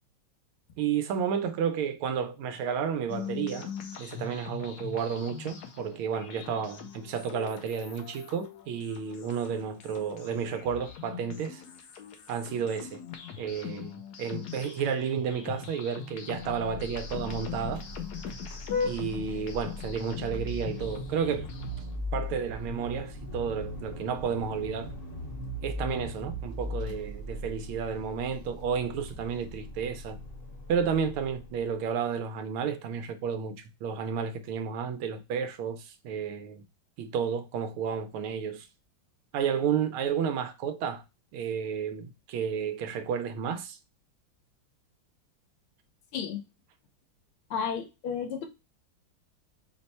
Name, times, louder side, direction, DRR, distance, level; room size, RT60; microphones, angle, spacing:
voice 1, 0.8-3.7 4.0-11.6 12.3-13.0 13.4-17.8 18.8-21.5 22.1-24.9 25.6-30.2 30.7-36.6 37.0-38.7 39.3-41.0 41.3-43.8, right 7 dB, 90° right, 1.5 m, -31 dB
sound 1, 3.1-22.0, left 8 dB, 65° left, 1.0 m, -42 dB
Vehicle horn car horn honking, 16.5-31.7, left 2 dB, 35° left, 1.0 m, -38 dB
voice 2, 47.5-48.5, left 7 dB, 85° left, 1.7 m, -32 dB
4.6 x 2.2 x 4.1 m
omnidirectional pair, 2.3 m